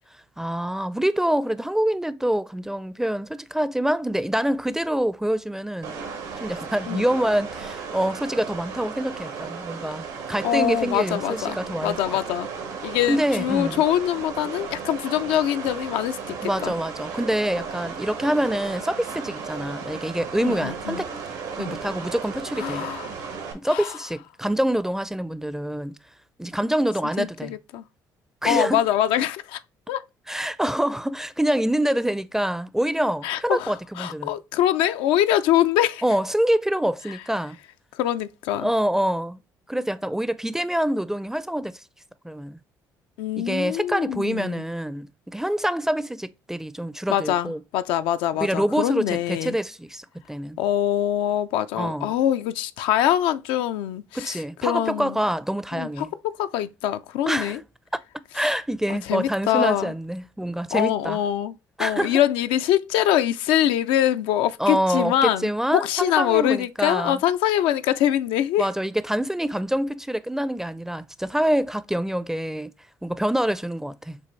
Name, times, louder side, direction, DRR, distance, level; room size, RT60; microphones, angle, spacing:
voice 1, 0.4-6.0 6.4-12.2 13.1-13.8 16.4-21.1 21.6-22.9 23.6-25.9 26.4-27.5 28.4-28.8 30.3-34.3 36.0-37.6 38.6-39.4 39.7-41.8 42.2-42.6 43.4-47.6 48.4-50.6 51.8-52.1 54.1-56.1 57.3-57.6 58.3-61.2 61.8-62.2 64.6-67.2 68.6-72.7 73.0-74.2, right 1 dB, 5° right, 0.4 m, -26 dB
sound 1, 5.8-23.5, right 6 dB, 85° right, 1.3 m, -35 dB
voice 2, 10.4-12.5 12.8-16.7 20.4-21.0 21.6-21.8 22.6-23.1 23.7-23.9 27.2-27.8 28.5-29.6 29.9-30.0 33.2-36.0 37.1-37.2 37.9-38.7 43.2-44.6 47.1-49.6 50.6-55.2 55.7-57.6 58.9-59.9 60.7-61.5 61.8-68.7, left 11 dB, 80° left, 0.4 m, -24 dB
6.7 x 2.5 x 3.1 m
supercardioid pair, 70°, 9 cm